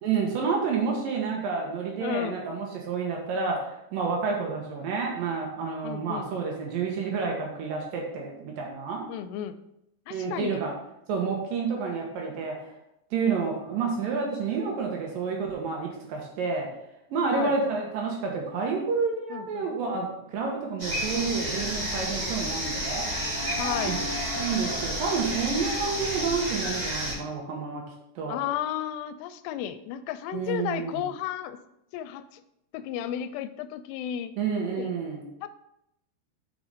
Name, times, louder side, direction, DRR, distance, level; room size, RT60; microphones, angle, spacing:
voice 1, 0.0-9.1 10.1-10.7 11.1-12.6 13.1-16.7 17.1-23.1 23.8-24.0 24.4-27.8 28.2-28.4 30.3-31.0 34.4-35.5, right 5 dB, 65° right, 0 dB, 2.6 m, -29 dB
voice 2, 2.0-2.4 5.8-6.3 9.1-9.6 10.1-10.6 17.3-17.5 19.3-19.7 23.6-24.0 28.3-31.6 31.9-32.4 32.7-34.3 34.8-34.9 35.4-35.5, left 11 dB, 85° left, 12 dB, 2.7 m, -33 dB
sound 1, 20.8-27.1, equal, 15° right, 1.4 m, -30 dB
6.6 x 6.6 x 4.1 m, 0.81 s
omnidirectional pair, 4.8 m